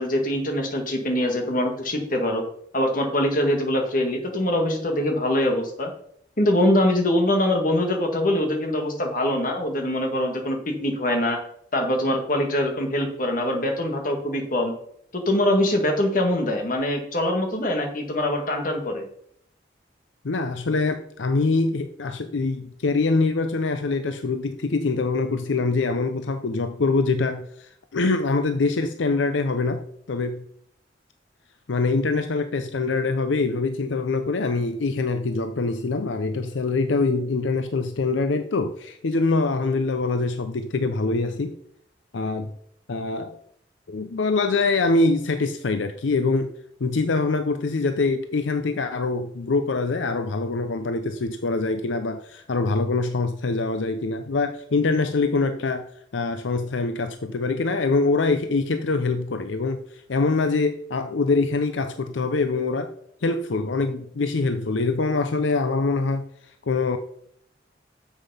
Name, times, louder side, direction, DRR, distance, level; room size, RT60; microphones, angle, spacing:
voice 1, 0.0-2.4 2.7-5.9 6.4-11.4 11.7-14.7 15.1-19.0, left 1 dB, 45° left, 3 dB, 1.8 m, -23 dB
voice 2, 20.2-29.8 30.1-30.4 31.7-41.5 42.1-42.5 42.9-43.4 43.9-46.5 46.8-55.9 56.1-62.9 63.2-66.3 66.6-67.0, left 3 dB, 80° left, 8 dB, 0.6 m, -24 dB
7.3 x 7.0 x 5.5 m, 0.68 s
head